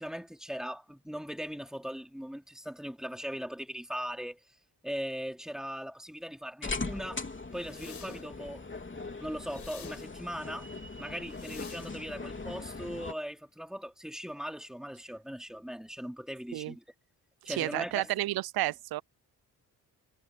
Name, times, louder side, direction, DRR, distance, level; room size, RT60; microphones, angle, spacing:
voice 1, 0.0-4.4 4.8-7.2 7.5-8.6 9.2-10.7 11.0-16.8 17.4-18.1, equal, ahead, 3.4 m, -39 dB
sound 1, 6.6-13.1, left 3 dB, 30° left, 3.4 m, -40 dB
sound 2, 7.5-8.3 9.4-10.1 11.2-11.9, left 8 dB, 75° left, 5.8 m, -50 dB
voice 2, 17.5-19.0, right 16 dB, 65° right, 0.5 m, -31 dB
cardioid pair, 60°, 39 cm